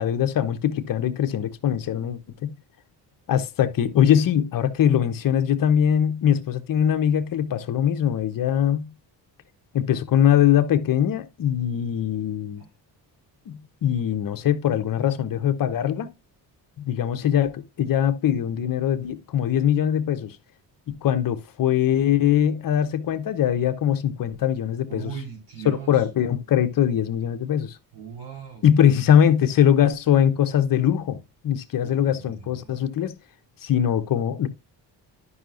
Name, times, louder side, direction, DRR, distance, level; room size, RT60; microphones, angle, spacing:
voice 1, 0.0-2.5 3.3-8.9 9.7-12.6 13.5-16.1 16.8-20.4 20.9-25.2 25.6-27.8 28.6-33.1 33.6-34.5, left 9 dB, 50° left, 0.9 m, -22 dB
voice 2, 24.9-25.9 27.9-28.6 31.8-32.8, right 7 dB, 75° right, 3.9 m, -38 dB
11.0 x 5.6 x 2.5 m
cardioid pair, 130°, 43 cm